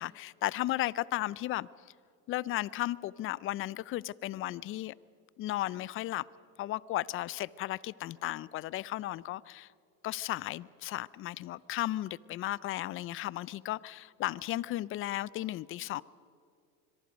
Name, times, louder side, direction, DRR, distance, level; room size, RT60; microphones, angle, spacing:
voice 1, 0.0-1.7 2.3-4.9 5.4-6.3 6.6-9.7 10.0-16.0, left 15 dB, 30° left, 0.4 m, -35 dB
25.5 x 22.5 x 5.2 m
supercardioid pair, 110°, 46 cm